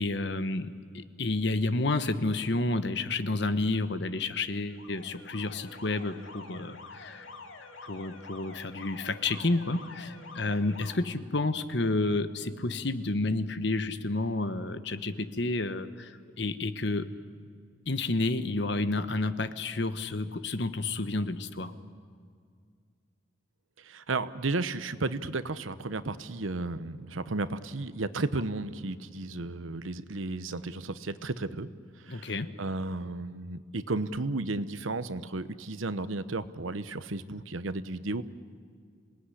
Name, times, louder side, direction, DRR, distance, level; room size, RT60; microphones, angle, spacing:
voice 1, 0.0-7.3 7.8-17.1 17.9-21.7 32.1-32.5, left 2 dB, 60° left, 11 dB, 1.1 m, -30 dB
Alarm, 4.5-11.0, left 3 dB, 80° left, 2.3 m, -47 dB
voice 2, 23.8-31.7 32.0-32.3 32.6-38.2, right 3 dB, 85° right, 13 dB, 1.0 m, -33 dB
26.5 x 18.5 x 10.0 m, 2.1 s
head